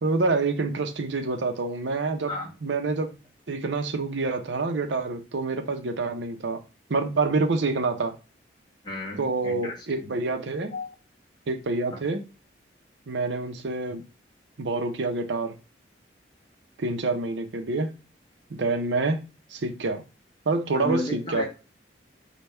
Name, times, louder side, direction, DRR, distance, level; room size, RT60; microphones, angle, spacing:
voice 1, 0.0-2.3 2.6-3.1 3.5-6.6 6.9-8.1 9.2-10.7 11.5-12.2 13.1-14.0 14.6-15.5 16.8-17.9 18.5-19.2 19.5-20.0 20.5-21.4, right 3 dB, 75° right, 0.6 m, -27 dB
voice 2, 8.8-10.1 10.7-10.9 11.9-12.0 20.7-21.5, left 2 dB, 25° left, 1.3 m, -33 dB
5.3 x 2.2 x 4.3 m
head